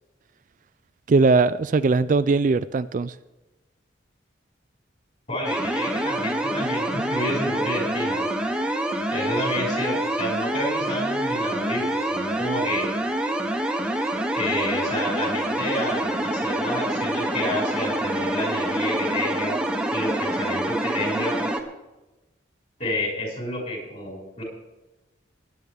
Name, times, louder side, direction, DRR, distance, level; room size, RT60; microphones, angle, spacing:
voice 1, 1.1-3.1, right 3 dB, 45° right, 14 dB, 0.3 m, -20 dB
voice 2, 5.3-8.3 9.1-12.9 14.3-19.6 19.9-21.3 22.8-24.4, left 1 dB, 35° left, -1 dB, 5.8 m, -29 dB
sound 1, 5.4-21.6, right 1 dB, 5° right, 1.0 m, -26 dB
19.0 x 10.5 x 3.5 m, 1.1 s
head